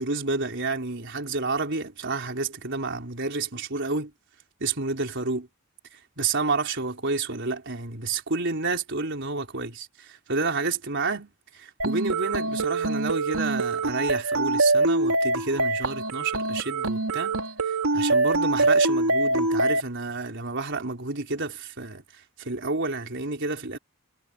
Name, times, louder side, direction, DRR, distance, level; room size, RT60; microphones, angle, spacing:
voice 1, 0.0-4.1 4.6-5.5 5.9-17.4 17.7-23.8, right 3 dB, 55° right, 4.3 m, -30 dB
sound 1, 11.8-19.8, right 2 dB, 90° right, 2.5 m, -24 dB
head